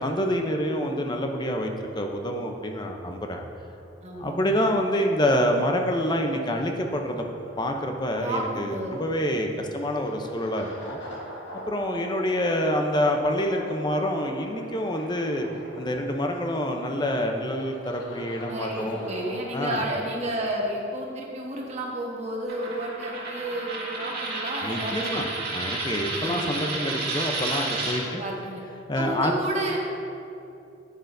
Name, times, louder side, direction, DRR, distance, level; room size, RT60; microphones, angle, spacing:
voice 1, 0.0-3.5 4.2-7.3 7.6-11.0 11.5-15.5 15.7-19.0 19.5-19.9 24.6-25.2 25.5-28.2 28.9-29.4, equal, 20° left, 3 dB, 0.6 m, -27 dB
sound 1, 1.4-19.3, equal, 65° left, 1.4 m, -44 dB
voice 2, 4.0-4.5 8.2-9.2 18.5-25.3 26.1-26.4 28.0-28.6 29.0-29.8, right 1 dB, 35° right, -2 dB, 1.2 m, -31 dB
Coin (dropping), 22.5-28.0, right 2 dB, 50° right, 1.6 m, -31 dB
9.4 x 9.1 x 2.6 m, 2.7 s
head